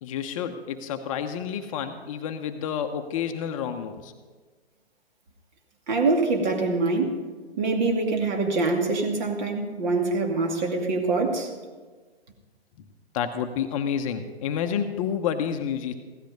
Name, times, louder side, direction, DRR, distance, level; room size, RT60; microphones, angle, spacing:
voice 1, 0.0-4.1 12.8-12.9 13.1-15.9, left 8 dB, 30° left, 6 dB, 0.9 m, -29 dB
voice 2, 5.9-7.2 7.6-11.5, right 3 dB, 45° right, 3 dB, 2.6 m, -24 dB
16.0 x 13.0 x 5.4 m, 1.4 s
figure-of-eight pair, 125°, 32 cm